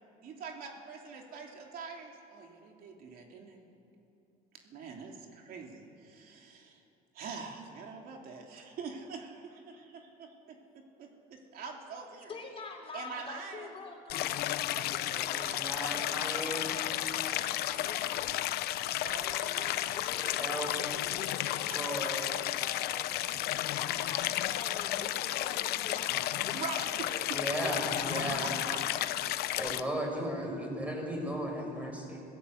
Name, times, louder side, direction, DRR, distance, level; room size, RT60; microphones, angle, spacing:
voice 1, 0.2-3.7 4.5-6.8 7.1-12.5 12.9-13.7 14.8-15.9 19.0-19.7 21.7-22.1 26.5-27.1 27.6-27.7 28.4-28.8 29.3-29.4, right 5 dB, 60° right, 1 dB, 3.1 m, -45 dB
voice 2, 12.3-15.5 15.8-18.4 19.0-23.2 23.7-27.3 27.7-28.8, left 4 dB, 35° left, 1 dB, 4.1 m, -46 dB
Stream, 14.1-29.8, left 14 dB, 70° left, 0.8 m, -33 dB
voice 3, 15.1-16.8 20.4-20.7 21.7-22.3 23.9-24.1 27.3-28.5 29.5-32.2, equal, 10° right, 1 dB, 6.0 m, -36 dB
25.5 x 16.5 x 8.0 m, 2.7 s
cardioid pair, 120°, 17 cm